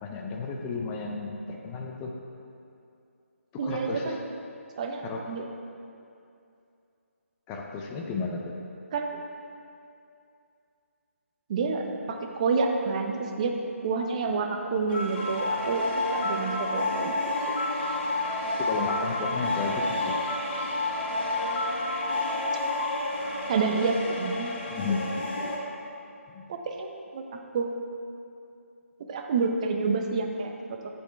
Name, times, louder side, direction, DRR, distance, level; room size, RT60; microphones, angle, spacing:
voice 1, 0.0-2.2 3.5-4.2 5.0-5.2 7.5-8.6 18.6-20.2 24.7-25.3 26.3-26.5, left 4 dB, 10° left, 0 dB, 0.4 m, -33 dB
voice 2, 3.6-4.1 4.8-5.4 8.9-9.2 11.5-13.5 13.8-17.1 17.5-17.6 23.5-24.5 26.5-27.2 27.5-27.8 29.1-30.5, right 4 dB, 30° right, 3 dB, 0.7 m, -28 dB
sound 1, 14.9-25.6, left 2 dB, 40° left, 1.5 m, -30 dB
14.5 x 5.3 x 3.4 m, 2.6 s
figure-of-eight pair, 160°, 8 cm